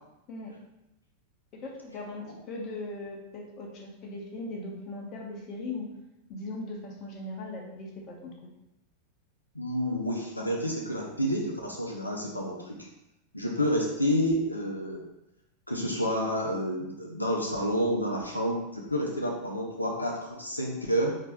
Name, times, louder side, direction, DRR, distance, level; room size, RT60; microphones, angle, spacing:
voice 1, 1.5-5.9 6.3-8.3, left 2 dB, 35° left, 0 dB, 1.0 m, -39 dB
voice 2, 9.5-12.9 13.3-15.0 15.7-21.2, equal, 85° left, -1 dB, 0.5 m, -29 dB
4.2 x 2.9 x 3.5 m, 0.90 s
figure-of-eight pair, 90°, 0 cm